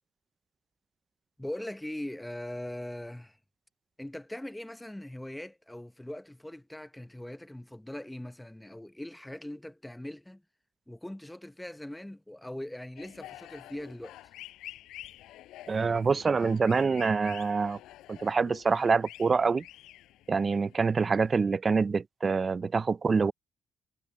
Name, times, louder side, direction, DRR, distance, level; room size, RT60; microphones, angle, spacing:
voice 1, 1.4-3.4 4.0-10.4 10.9-14.2, left 1 dB, 5° left, 0.7 m, -41 dB
sound 1, 13.0-21.3, left 14 dB, 90° left, 5.8 m, -49 dB
voice 2, 15.7-17.8 18.1-19.6 20.3-23.3, right 5 dB, 35° right, 0.4 m, -26 dB
cardioid pair, 90°, 0 cm